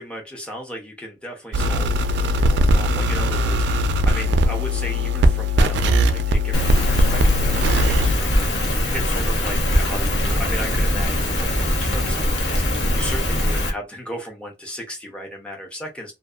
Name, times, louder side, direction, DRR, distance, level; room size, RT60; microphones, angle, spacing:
voice 1, 0.0-16.1, equal, 5° left, 0.6 m, -36 dB
sound 1, 1.5-8.1, equal, 70° right, 0.3 m, -20 dB
Rain, 6.5-13.7, left 1 dB, 80° left, 0.8 m, -21 dB
2.6 x 2.4 x 2.3 m
head